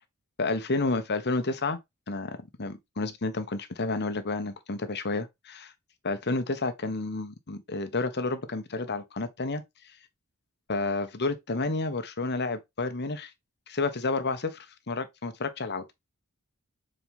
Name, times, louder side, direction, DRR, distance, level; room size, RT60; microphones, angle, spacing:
voice 1, 0.4-1.8 2.1-5.7 6.0-9.6 10.7-13.3 13.7-15.8, left 3 dB, 50° left, 1.2 m, -30 dB
7.4 x 4.7 x 3.6 m
head